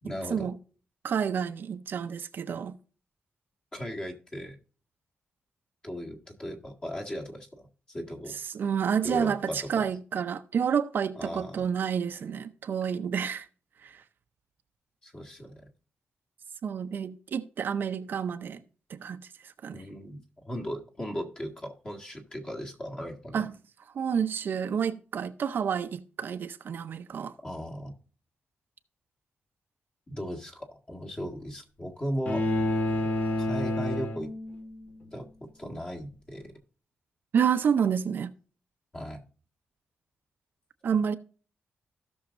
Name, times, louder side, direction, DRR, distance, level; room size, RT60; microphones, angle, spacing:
voice 1, 0.0-0.5 3.7-4.6 5.8-8.4 9.0-9.9 11.2-11.7 15.0-15.7 19.7-23.4 27.4-27.9 30.1-32.4 33.4-34.3 35.1-35.3 35.6-36.5 38.9-39.2, equal, 20° left, 1.8 m, -37 dB
voice 2, 1.0-2.8 8.5-13.5 13.8-14.0 16.6-18.6 18.9-19.8 23.3-23.5 23.9-27.3 37.3-38.3 40.8-41.1, right 7 dB, 55° right, 0.6 m, -29 dB
sound 1, 32.3-34.8, left 1 dB, 45° left, 2.0 m, -29 dB
16.5 x 6.3 x 2.6 m
wide cardioid pair, 155°, 4 cm